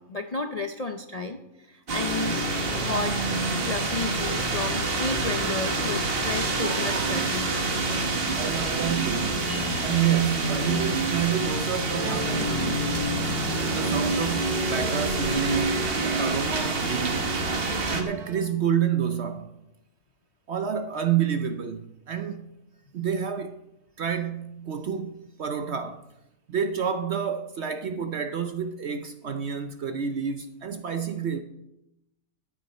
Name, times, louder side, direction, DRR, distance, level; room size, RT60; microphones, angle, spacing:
voice 1, 0.0-2.4 2.8-3.2 3.6-7.5, left 3 dB, 45° left, 0.5 m, -32 dB
sound 1, 1.9-18.0, right 2 dB, 40° right, 1.4 m, -27 dB
voice 2, 8.4-9.4 9.8-12.9 13.7-17.3 17.9-19.5 20.5-22.5 22.9-23.6 24.0-26.0 26.5-31.4, right 8 dB, 60° right, 0.7 m, -29 dB
Bowed string instrument, 11.9-18.9, right 6 dB, 80° right, 1.7 m, -41 dB
13.5 x 9.6 x 4.3 m
omnidirectional pair, 1.6 m